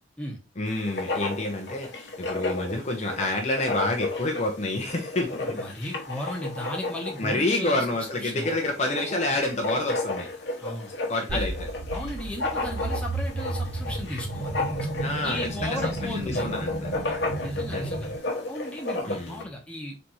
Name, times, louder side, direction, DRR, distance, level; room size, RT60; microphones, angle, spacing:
voice 1, 0.6-5.6 6.2-6.3 7.2-10.3 11.1-11.5 15.0-15.8 16.1-17.0 17.7-17.9 19.0-19.5, left 2 dB, 35° left, 2 dB, 0.7 m, -28 dB
Writing, 0.7-19.4, left 2 dB, 65° left, 1.0 m, -33 dB
voice 2, 5.5-7.8 8.2-8.6 10.6-10.9 11.3-11.4 11.9-14.6 15.2-16.5 17.4-18.1 18.5-20.0, left 1 dB, 5° left, -1 dB, 1.0 m, -35 dB
sound 1, 11.3-18.2, right 2 dB, 55° right, 0.8 m, -33 dB
4.1 x 3.4 x 3.0 m, 0.29 s
head